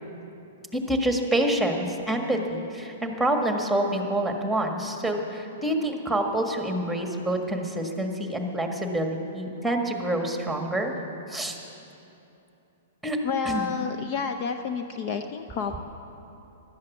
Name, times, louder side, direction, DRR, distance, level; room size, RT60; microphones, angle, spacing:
voice 1, 0.7-10.9 11.3-11.6 13.0-13.2 13.4-13.7, right 1 dB, ahead, 3 dB, 1.6 m, -27 dB
voice 2, 13.2-15.8, left 6 dB, 45° left, 7 dB, 0.7 m, -30 dB
16.0 x 12.0 x 7.2 m, 2.9 s
hypercardioid pair, 130°, 0 cm